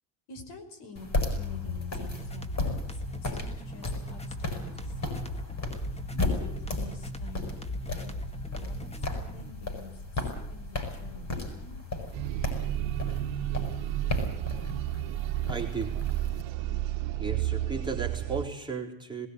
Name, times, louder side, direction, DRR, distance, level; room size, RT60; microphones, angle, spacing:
voice 1, 0.3-5.0 6.1-8.2 8.6-11.8, left 2 dB, 60° left, 6 dB, 5.5 m, -48 dB
sound 1, 1.0-16.4, left 3 dB, 35° left, 7.4 m, -35 dB
sound 2, 1.9-9.5, right 1 dB, 15° left, 1.9 m, -39 dB
sound 3, 12.1-18.5, right 13 dB, 65° right, 1.3 m, -31 dB
voice 2, 15.4-16.0 17.2-19.3, right 4 dB, 10° right, -1 dB, 4.1 m, -35 dB
20.5 x 16.0 x 9.8 m, 0.74 s
supercardioid pair, 95°, 48 cm